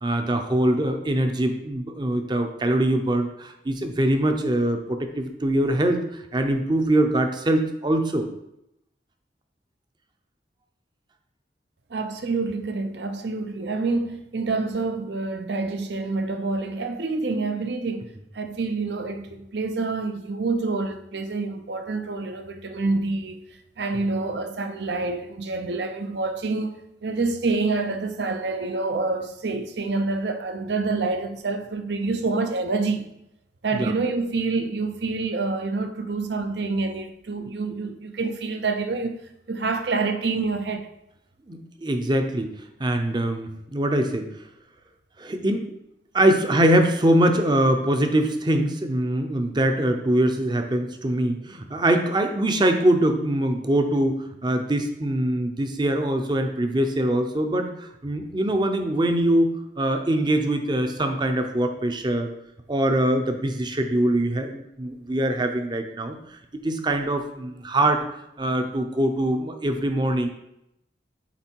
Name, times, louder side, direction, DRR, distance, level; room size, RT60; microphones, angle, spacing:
voice 1, 0.0-8.3 33.8-33.9 41.5-42.5 42.8-44.3 45.2-45.7 46.1-62.3 62.7-66.2 66.6-68.0 68.4-70.3, right 1 dB, 25° right, 0.6 m, -23 dB
voice 2, 11.9-33.1 33.6-39.2 39.5-40.9, right 3 dB, 70° right, 0.7 m, -27 dB
8.2 x 3.3 x 4.5 m
head